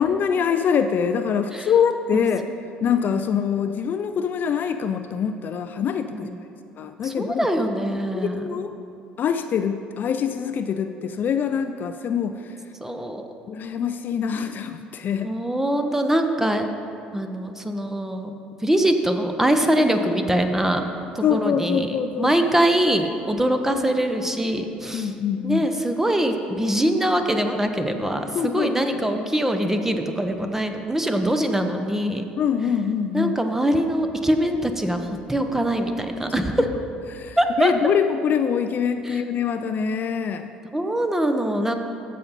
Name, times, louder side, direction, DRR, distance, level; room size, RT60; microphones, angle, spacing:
voice 1, 0.0-2.4 2.8-6.3 6.8-7.5 8.1-8.7 9.2-12.5 13.5-15.3 21.2-22.3 24.9-25.7 28.3-29.2 32.4-33.3 37.1-40.5, left 7 dB, 45° left, 8 dB, 0.4 m, -24 dB
voice 2, 7.0-8.4 12.8-13.2 15.2-16.7 17.1-18.3 18.6-20.9 21.1-25.1 25.4-32.2 33.1-36.7 37.4-37.7 39.1-39.2 40.7-41.7, right 1 dB, 10° right, 6 dB, 0.9 m, -23 dB
14.5 x 5.5 x 4.1 m, 2.7 s
hypercardioid pair, 60°, 4 cm